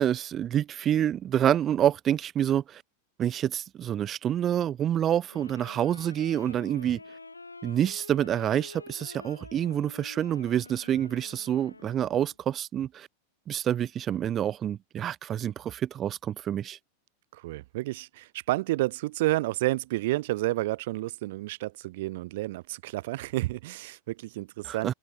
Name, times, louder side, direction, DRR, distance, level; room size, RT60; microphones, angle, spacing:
voice 1, 0.0-2.8 3.2-7.0 7.6-13.1 13.5-16.8 24.6-24.9, right 10 dB, 30° right, 0.9 m, -27 dB
sound 1, 5.3-12.4, left 3 dB, 80° left, 1.9 m, -47 dB
voice 2, 17.3-24.9, right 18 dB, 50° right, 1.9 m, -30 dB
figure-of-eight pair, 90°, 0 cm